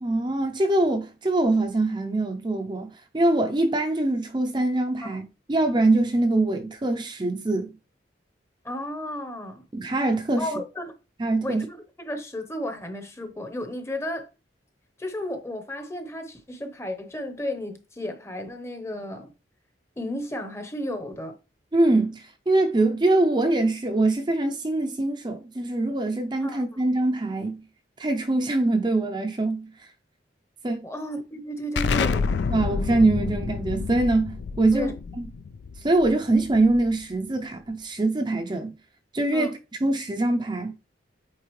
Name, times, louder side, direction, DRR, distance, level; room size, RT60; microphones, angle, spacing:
voice 1, 0.0-7.7 9.7-10.5 11.2-11.7 21.7-27.6 28.0-29.9 30.6-30.8 32.5-34.9 35.2-35.3 35.8-38.7 39.1-39.5 39.8-40.8, right 2 dB, 25° right, 0.5 m, -23 dB
voice 2, 8.6-9.6 10.4-10.9 11.4-14.3 15.0-19.3 20.0-21.3 26.4-26.6 30.8-32.3 34.7-34.9 39.3-39.5, left 1 dB, 15° left, 0.8 m, -33 dB
Explosion, 31.8-37.1, left 5 dB, 70° left, 0.3 m, -29 dB
8.3 x 3.8 x 3.1 m
head